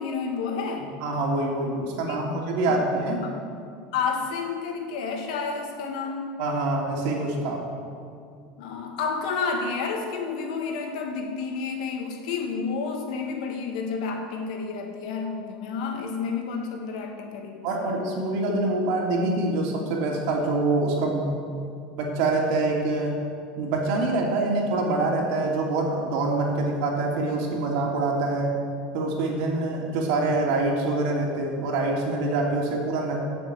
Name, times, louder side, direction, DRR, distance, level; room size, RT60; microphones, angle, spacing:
voice 1, 0.0-0.9 2.1-2.2 2.6-2.8 3.2-3.4 3.9-6.3 8.6-17.9, left 5 dB, 75° left, 2 dB, 2.5 m, -30 dB
voice 2, 1.0-3.2 6.4-7.6 17.6-21.3 22.0-23.2 23.6-28.5 28.9-33.2, right 2 dB, 60° right, 0 dB, 3.0 m, -25 dB
16.0 x 7.1 x 8.1 m, 2.3 s
cardioid pair, 175°, 4 cm